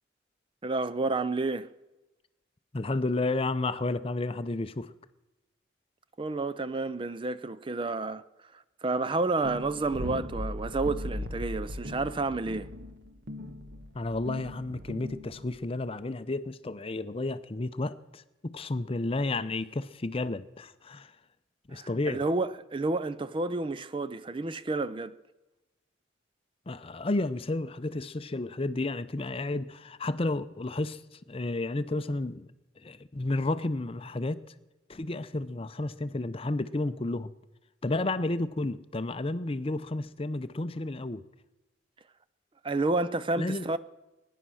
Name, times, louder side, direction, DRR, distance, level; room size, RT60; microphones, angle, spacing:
voice 1, 0.6-1.7 6.2-8.2 8.5-12.7 21.7-25.1 42.6-43.8, right 3 dB, 25° right, 0.4 m, -30 dB
voice 2, 2.7-4.9 13.9-21.1 21.7-22.2 26.7-31.0 31.3-32.5 32.8-34.4 34.9-37.3 37.8-41.2 43.4-43.7, left 2 dB, 30° left, 0.6 m, -32 dB
sound 1, 9.4-15.6, left 1 dB, 55° right, 1.3 m, -38 dB
21.5 x 10.0 x 6.3 m
head